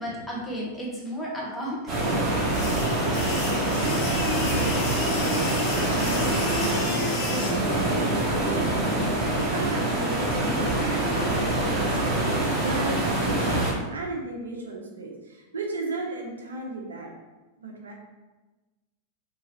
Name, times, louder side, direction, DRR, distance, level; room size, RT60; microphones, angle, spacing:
voice 1, 0.0-1.8, equal, 5° left, -6 dB, 0.9 m, -33 dB
sound 1, 1.9-13.7, right 1 dB, 25° right, 1.0 m, -25 dB
sound 2, 2.5-7.5, left 3 dB, 40° left, 0.7 m, -32 dB
voice 2, 5.6-17.1 17.6-17.9, right 2 dB, 70° right, 0 dB, 0.5 m, -36 dB
2.8 x 2.7 x 2.7 m, 1.2 s
figure-of-eight pair, 90°, 0 cm